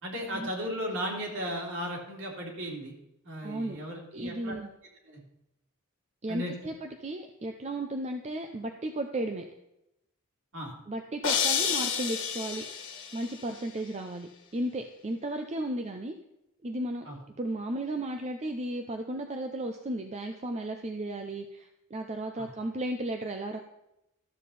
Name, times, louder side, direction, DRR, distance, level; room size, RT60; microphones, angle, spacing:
voice 1, 0.0-2.9 3.2-4.5 5.1-5.2 6.3-6.5 10.5-10.7 17.0-17.2 22.4-22.5, equal, 60° right, -2 dB, 3.1 m, -35 dB
voice 2, 3.4-3.8 4.1-4.7 6.2-9.5 10.9-12.6 13.1-16.1 16.6-17.1 17.4-23.6, right 1 dB, 30° right, 5 dB, 0.6 m, -34 dB
sound 1, 11.2-13.3, left 7 dB, 60° left, 1.6 m, -29 dB
13.0 x 7.2 x 4.2 m, 0.86 s
head